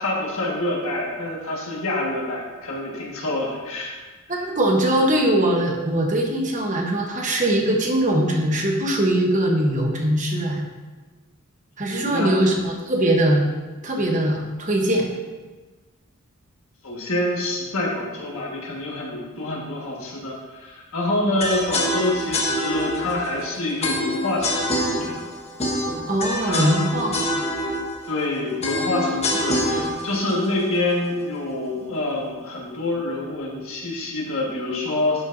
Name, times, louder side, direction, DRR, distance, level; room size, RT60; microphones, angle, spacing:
voice 1, 0.0-4.0 11.9-12.4 16.8-25.2 26.4-26.8 28.0-35.2, left 2 dB, 70° left, -3 dB, 1.7 m, -26 dB
voice 2, 4.3-10.7 11.8-13.4 13.8-15.1 26.1-27.4, right 1 dB, 35° right, 1 dB, 1.0 m, -21 dB
sound 1, 21.4-31.5, left 1 dB, 30° left, 1.0 m, -26 dB
10.5 x 5.7 x 2.7 m, 1.3 s
head